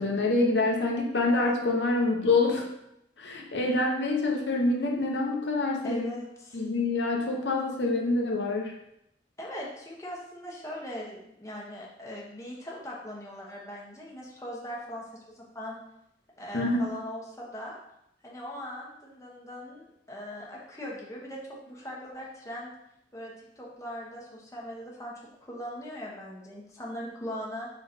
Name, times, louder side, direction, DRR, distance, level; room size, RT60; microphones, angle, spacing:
voice 1, 0.0-2.7 3.2-6.1 6.5-8.7 16.5-16.9, left 2 dB, 80° left, -1 dB, 1.0 m, -26 dB
voice 2, 5.8-6.6 9.4-15.0 15.3-15.8 16.4-17.8 18.2-22.7 23.1-25.1 25.4-27.7, equal, 20° left, -4 dB, 1.1 m, -40 dB
5.4 x 4.0 x 4.4 m, 0.80 s
head